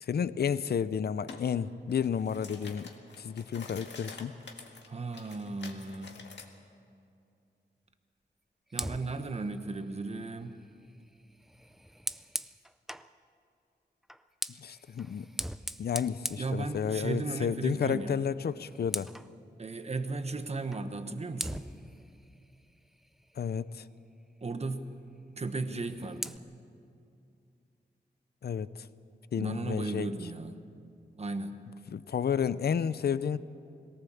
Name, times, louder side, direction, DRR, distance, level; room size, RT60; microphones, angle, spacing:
voice 1, 0.0-2.9 3.2-4.3 14.6-15.3 15.8-19.1 23.4-23.8 28.4-28.7 29.3-30.1 31.9-33.4, left 7 dB, 60° left, 16 dB, 0.6 m, -31 dB
sound 1, 1.3-1.4 1.9-6.5, left 4 dB, 80° left, 1.8 m, -48 dB
voice 2, 4.9-6.2 8.7-10.6 16.4-18.2 19.6-21.7 24.4-25.0 25.3-26.4 29.4-30.6 31.2-31.6, right 3 dB, 35° right, 8 dB, 1.1 m, -35 dB
Fire, 8.7-13.1 14.0-17.3 17.6-17.9 18.2-19.3 20.7-20.9 21.4-23.7 25.6-26.4, equal, ahead, 0.4 m, -41 dB
22.0 x 18.5 x 7.2 m, 2.5 s
wide cardioid pair, 160°, 18 cm